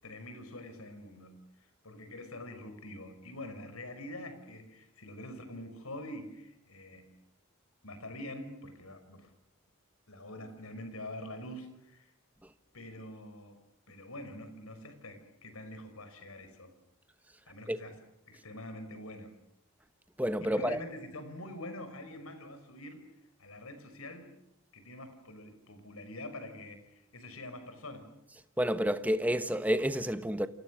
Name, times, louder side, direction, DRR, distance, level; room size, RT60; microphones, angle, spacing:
voice 1, 0.0-7.1 7.8-9.3 10.1-12.1 12.7-13.6 13.9-16.7 17.5-18.0 18.3-19.3 20.4-23.1 23.4-24.3 24.7-28.1, left 1 dB, 80° left, 5.5 m, -45 dB
voice 2, 20.2-20.8 28.6-30.5, equal, 5° right, 1.1 m, -29 dB
29.0 x 28.5 x 6.4 m
head